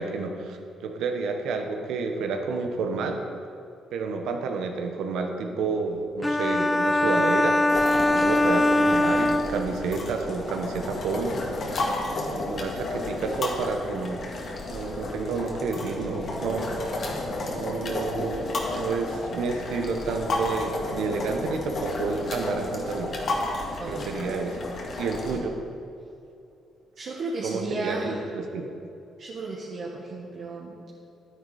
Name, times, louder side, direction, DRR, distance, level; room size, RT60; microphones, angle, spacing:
voice 1, 0.0-3.2 3.9-7.6 7.9-11.4 12.4-14.3 14.7-16.7 17.5-23.2 23.9-24.6 25.0-25.6 27.4-28.7, right 4 dB, 80° right, 4 dB, 1.1 m, -30 dB
sound 1, 6.2-10.1, left 1 dB, 10° left, 0.4 m, -22 dB
sound 2, 7.7-25.4, left 2 dB, 50° left, 1.8 m, -32 dB
voice 2, 12.1-12.4 23.8-24.1 27.0-28.3 29.2-30.8, right 2 dB, 55° right, -4 dB, 1.6 m, -34 dB
10.5 x 9.9 x 4.3 m, 2.7 s
cardioid pair, 90°, 0 cm